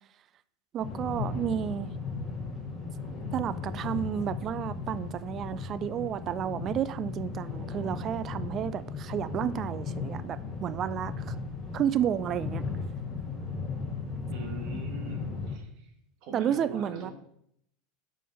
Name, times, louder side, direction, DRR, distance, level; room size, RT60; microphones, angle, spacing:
voice 1, 0.7-1.9 3.3-11.3 11.7-12.6 16.3-17.1, right 9 dB, 40° right, 16 dB, 0.3 m, -31 dB
sound 1, 0.8-15.6, left 4 dB, 10° left, 1.8 m, -36 dB
voice 2, 14.3-15.9 16.2-17.1, right 2 dB, 55° right, 3 dB, 1.5 m, -42 dB
4.9 x 3.9 x 5.3 m, 0.72 s
hypercardioid pair, 90°, 0 cm